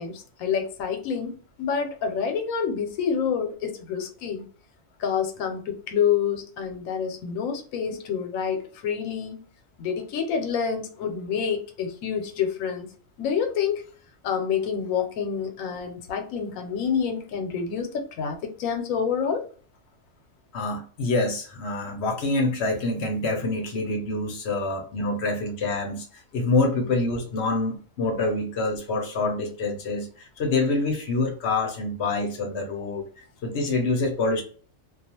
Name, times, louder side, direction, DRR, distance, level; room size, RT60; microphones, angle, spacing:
voice 1, 0.0-4.5 5.0-9.4 9.8-12.9 13.2-13.8 14.2-19.4, left 7 dB, 85° left, 5 dB, 1.0 m, -28 dB
voice 2, 20.5-34.4, left 2 dB, 60° left, 4 dB, 0.8 m, -26 dB
2.4 x 2.3 x 2.8 m, 0.42 s
omnidirectional pair, 1.4 m